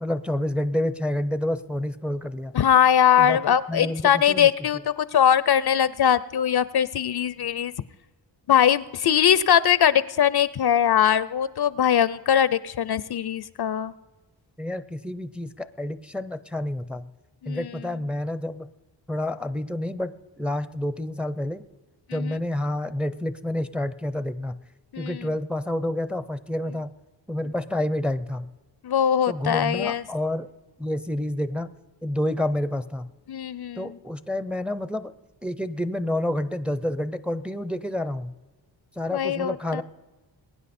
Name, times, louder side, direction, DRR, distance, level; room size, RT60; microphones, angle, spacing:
voice 1, 0.0-2.5 3.2-4.5 14.6-17.1 17.5-18.7 19.1-20.1 20.4-21.6 22.1-24.6 25.0-26.9 27.3-28.5 29.3-30.5 30.8-31.7 32.0-33.1 33.8-35.1 35.4-38.3 39.0-39.8, left 1 dB, ahead, 13 dB, 0.6 m, -29 dB
voice 2, 2.5-7.7 8.5-13.9 17.4-17.7 22.1-22.4 24.9-25.3 28.8-30.0 33.3-34.0 39.1-39.8, left 9 dB, 60° left, 18 dB, 0.6 m, -21 dB
21.5 x 9.5 x 4.3 m, 1.2 s
cardioid pair, 70°, 45 cm